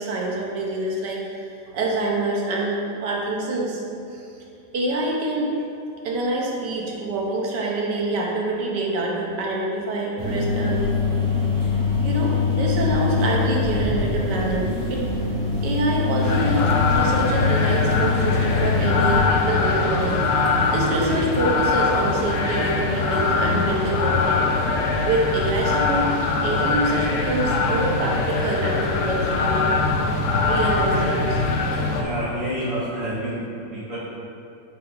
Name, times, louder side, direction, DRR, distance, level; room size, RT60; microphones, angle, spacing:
voice 1, 0.0-1.5 1.7-3.8 4.1-4.2 4.7-5.5 6.0-11.0 12.0-15.0 15.6-24.4 25.0-26.1 26.4-29.7 30.4-31.4, right 2 dB, 80° right, -2 dB, 1.5 m, -26 dB
sound 1, 10.2-19.2, left 5 dB, 20° right, 1.4 m, -23 dB
sound 2, 16.2-32.0, left 3 dB, 65° left, 0.8 m, -22 dB
voice 2, 31.9-34.0, equal, 50° right, -12 dB, 1.8 m, -29 dB
5.8 x 4.4 x 3.8 m, 2.6 s
omnidirectional pair, 1.8 m